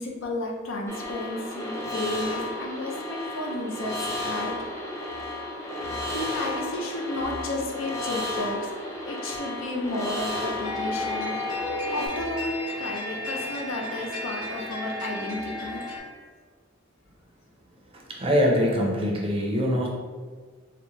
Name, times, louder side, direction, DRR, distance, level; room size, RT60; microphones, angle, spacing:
voice 1, 0.0-4.6 6.1-11.3 11.9-15.8, left 1 dB, 70° left, -1 dB, 0.6 m, -32 dB
sound 1, 0.9-12.1, left 1 dB, 15° left, 0.5 m, -33 dB
sound 2, 10.6-16.0, left 1 dB, 40° left, 1.4 m, -33 dB
voice 2, 17.9-19.9, equal, 30° right, -2 dB, 0.6 m, -23 dB
4.1 x 2.1 x 2.9 m, 1.5 s
head